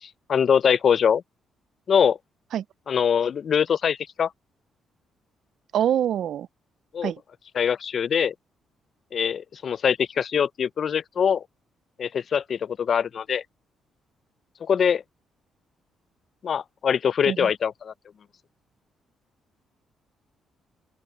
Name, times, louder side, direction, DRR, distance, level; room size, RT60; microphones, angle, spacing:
voice 1, 0.3-1.2 1.9-2.2 2.9-4.3 6.9-7.1 7.6-8.3 9.1-11.4 12.0-13.4 14.6-15.0 16.4-17.9, left 7 dB, 55° left, 0.4 m, -23 dB
voice 2, 5.7-6.5 7.0-7.2 17.3-17.5, right 10 dB, 70° right, 0.4 m, -25 dB
open air
cardioid pair, 90°, 0 cm